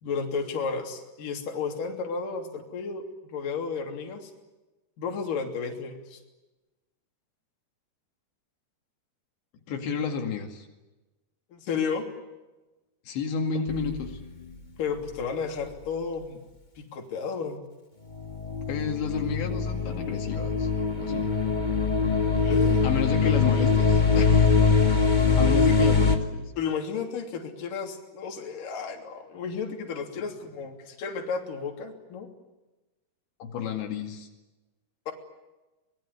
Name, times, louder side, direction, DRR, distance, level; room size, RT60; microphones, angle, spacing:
voice 1, 0.0-3.0 3.3-4.3 5.0-6.2 11.5-12.0 13.5-13.7 14.8-16.4 16.8-17.6 22.4-22.8 26.6-32.3 35.1-35.2, left 5 dB, 50° left, 3 dB, 4.4 m, -32 dB
voice 2, 9.7-10.7 13.1-14.2 18.6-20.7 21.0-21.3 22.8-26.5 33.4-34.3, left 6 dB, 80° left, 3 dB, 4.5 m, -31 dB
sound 1, 13.7-14.5 18.1-26.2, left 5 dB, 35° left, 0.7 m, -23 dB
24.5 x 21.5 x 9.9 m, 1.1 s
omnidirectional pair, 5.0 m